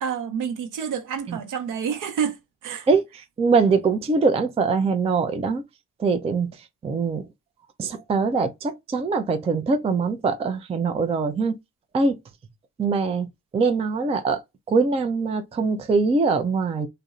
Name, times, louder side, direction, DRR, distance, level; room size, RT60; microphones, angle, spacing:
voice 1, 0.0-2.9, right 7 dB, 55° right, 0.7 m, -29 dB
voice 2, 2.9-5.6 6.0-6.5 6.8-7.2 7.8-11.5 11.9-12.1 12.8-13.3 13.5-14.4 14.7-16.9, right 4 dB, 15° right, 0.4 m, -22 dB
2.5 x 2.0 x 2.4 m
hypercardioid pair, 50°, 36 cm